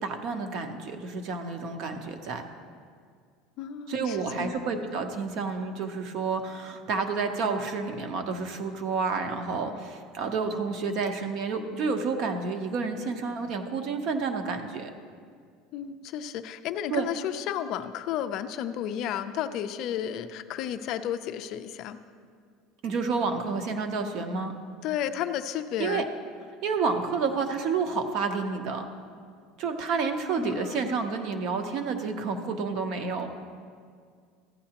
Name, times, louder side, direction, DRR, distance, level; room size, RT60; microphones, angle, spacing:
voice 1, 0.0-2.4 3.9-14.9 16.9-17.1 22.8-24.5 25.8-26.0 26.6-28.8 29.6-33.3, right 4 dB, 40° right, 6 dB, 0.7 m, -30 dB
voice 2, 3.6-4.5 15.7-22.0 24.8-26.1 30.4-31.0, left 10 dB, 40° left, 10 dB, 0.4 m, -32 dB
14.5 x 9.6 x 2.9 m, 2.1 s
cardioid pair, 175°, 0 cm